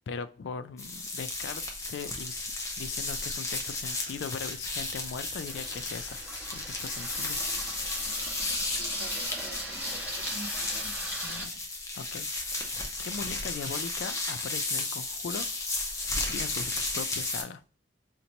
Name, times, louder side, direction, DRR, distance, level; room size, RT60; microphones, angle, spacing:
voice 1, 0.1-2.5 2.8-6.2 6.5-7.4 11.2-11.6 12.0-12.6 13.0-15.5 16.3-17.6, left 5 dB, 75° left, 12 dB, 0.3 m, -39 dB
sound 1, 0.8-17.4, left 2 dB, 15° left, 0.6 m, -34 dB
Water tap faucet / Sink (filling or washing), 4.3-11.5, right 1 dB, 10° right, 1.2 m, -39 dB
voice 2, 8.8-11.0, right 1 dB, 55° right, 8 dB, 0.3 m, -47 dB
3.9 x 2.2 x 2.8 m, 0.38 s
head